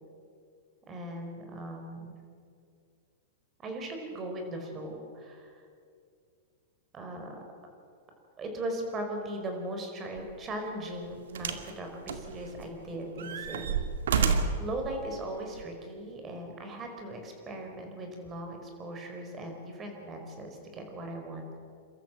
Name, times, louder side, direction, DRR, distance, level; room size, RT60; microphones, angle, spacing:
voice 1, 0.9-2.2 3.6-5.6 6.9-7.4 8.4-13.8 14.6-21.6, right 1 dB, 25° right, 3 dB, 4.9 m, -38 dB
sound 1, 10.2-10.4 11.4-11.7 12.1-12.8 13.2-14.7 15.6-15.7, right 5 dB, 85° right, 2.2 m, -29 dB
29.5 x 13.5 x 7.8 m, 2.3 s
hypercardioid pair, 135°, 0 cm